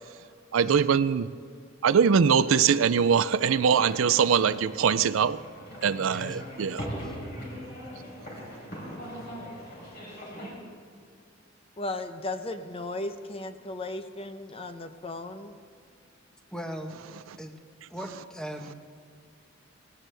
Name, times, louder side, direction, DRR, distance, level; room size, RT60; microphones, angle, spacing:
voice 1, 0.5-1.3 1.8-5.4 5.8-6.9, right 6 dB, 80° right, 0.4 m, -22 dB
sound 1, 3.5-10.5, equal, 55° left, 3.9 m, -40 dB
voice 2, 6.0-6.5 7.0-7.1 16.5-17.0 17.4-17.6 17.9-18.7, equal, 5° left, 1.0 m, -39 dB
voice 3, 11.8-15.6, left 2 dB, 30° left, 0.8 m, -36 dB
18.5 x 16.5 x 3.4 m
head